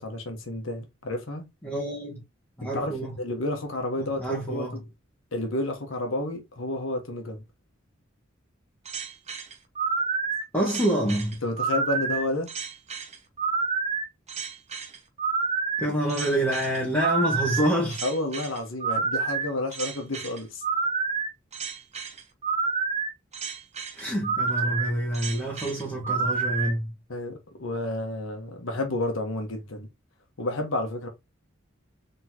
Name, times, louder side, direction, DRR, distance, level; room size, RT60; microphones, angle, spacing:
voice 1, 0.0-1.5 2.6-4.8 5.3-7.4 11.4-12.5 18.0-20.6 27.1-29.9 30.4-31.1, left 2 dB, 75° left, 1.2 m, -31 dB
voice 2, 1.6-2.2 2.6-3.1 4.0-4.8 10.5-11.4 15.8-18.0 24.0-26.9, right 1 dB, 10° left, 1.6 m, -27 dB
sound 1, 8.9-26.7, right 5 dB, 35° right, 0.8 m, -29 dB
4.2 x 3.7 x 2.8 m
head